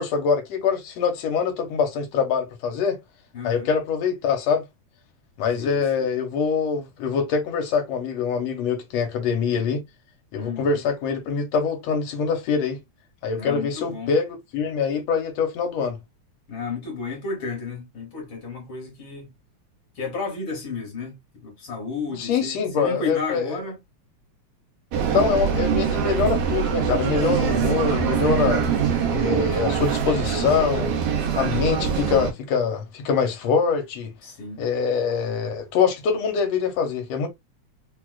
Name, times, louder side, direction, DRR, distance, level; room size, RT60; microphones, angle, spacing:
voice 1, 0.0-3.0 3.4-4.6 5.4-9.8 10.3-12.8 13.2-16.0 22.1-23.6 25.0-28.6 29.1-30.9 31.4-34.1 34.6-37.3, left 6 dB, 70° left, 1.8 m, -24 dB
voice 2, 3.3-3.7 5.6-6.1 10.4-10.8 13.3-14.1 16.5-19.3 19.9-23.8 28.6-29.1 34.2-34.6, left 4 dB, 55° left, 1.7 m, -33 dB
sound 1, 24.9-32.3, right 7 dB, 70° right, 1.5 m, -23 dB
4.6 x 2.3 x 2.3 m
omnidirectional pair, 3.3 m